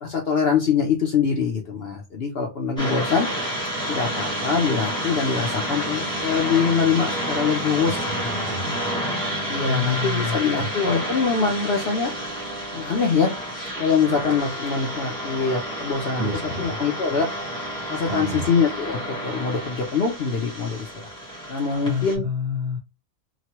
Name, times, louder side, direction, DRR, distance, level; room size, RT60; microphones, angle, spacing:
voice 1, 0.0-3.3 3.9-8.0 9.5-12.1 12.7-13.3 13.8-16.3 16.6-17.3 17.9-21.1 21.5-22.3, left 5 dB, 55° left, 1 dB, 0.7 m, -23 dB
sound 1, 2.8-22.2, equal, 5° left, 1.2 m, -30 dB
voice 2, 7.9-8.9 9.7-10.7 16.2-16.6 18.1-18.5 21.7-22.8, left 4 dB, 55° right, 2 dB, 0.8 m, -29 dB
3.0 x 2.2 x 2.9 m, 0.26 s
omnidirectional pair, 1.5 m